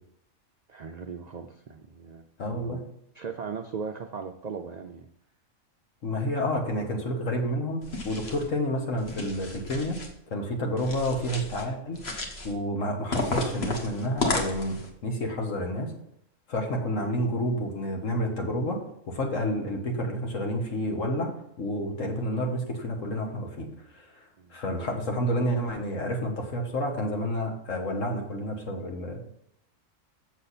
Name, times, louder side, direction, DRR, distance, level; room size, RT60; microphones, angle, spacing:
voice 1, 0.7-2.8 3.1-5.1 6.4-6.5 17.1-17.2 24.4-24.6, right 6 dB, 65° right, 6 dB, 0.4 m, -38 dB
voice 2, 2.4-2.8 6.0-10.0 10.3-12.0 12.4-15.9 16.5-18.8 19.1-21.3 21.6-23.7 23.9-29.2, equal, 80° left, 2 dB, 1.8 m, -29 dB
sound 1, 7.8-8.5 9.0-10.1 10.8-11.6 11.9-12.5 13.1-14.9, left 2 dB, 55° left, 1.4 m, -33 dB
7.2 x 6.6 x 4.1 m, 0.75 s
omnidirectional pair, 1.3 m